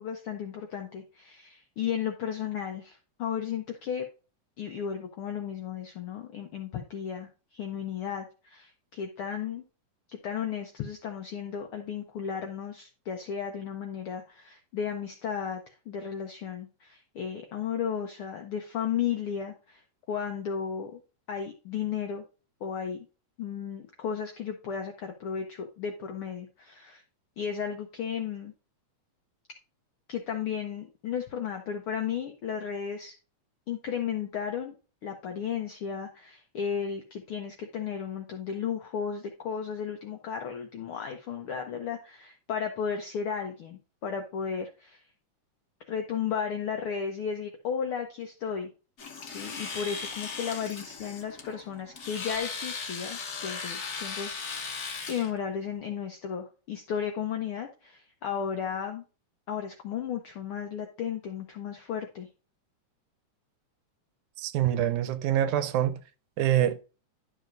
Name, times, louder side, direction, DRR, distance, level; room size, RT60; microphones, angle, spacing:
voice 1, 0.0-4.0 4.6-9.6 10.2-19.8 20.1-21.0 21.3-22.2 22.6-23.1 23.4-27.0 27.4-28.5 30.1-33.1 33.7-34.7 35.0-45.0 45.9-48.7 49.3-59.0 59.5-62.3, left 7 dB, 75° left, 1.2 m, -34 dB
Domestic sounds home sounds, 49.0-55.3, left 5 dB, 55° left, 1.1 m, -37 dB
voice 2, 64.4-66.0 66.4-66.8, right 11 dB, 80° right, 2.1 m, -25 dB
11.5 x 6.2 x 2.5 m
omnidirectional pair, 3.5 m